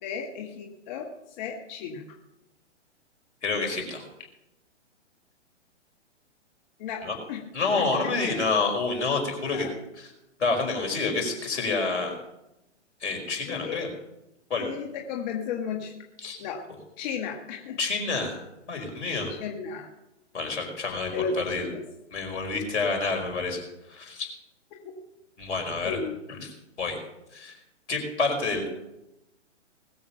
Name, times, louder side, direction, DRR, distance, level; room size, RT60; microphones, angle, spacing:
voice 1, 0.0-1.1 1.4-2.0 6.8-7.4 7.7-8.4 9.5-9.7 13.5-13.9 14.6-15.9 16.4-16.6 17.0-17.8 19.4-19.9 21.1-21.8 23.0-23.1 24.8-25.0 25.8-26.1, left 6 dB, 35° left, 2 dB, 1.6 m, -34 dB
voice 2, 3.4-4.0 7.0-7.2 7.5-9.7 10.0-10.1 10.4-12.1 13.0-13.9 14.5-14.7 16.2-16.4 17.8-18.4 18.7-19.3 20.3-21.6 22.1-23.6 23.9-24.3 25.4-26.0 26.4-26.5 26.8-27.0 27.3-27.5 27.9-28.7, left 4 dB, 70° left, 3 dB, 5.1 m, -28 dB
20.5 x 7.3 x 5.8 m, 0.91 s
hypercardioid pair, 130°, 36 cm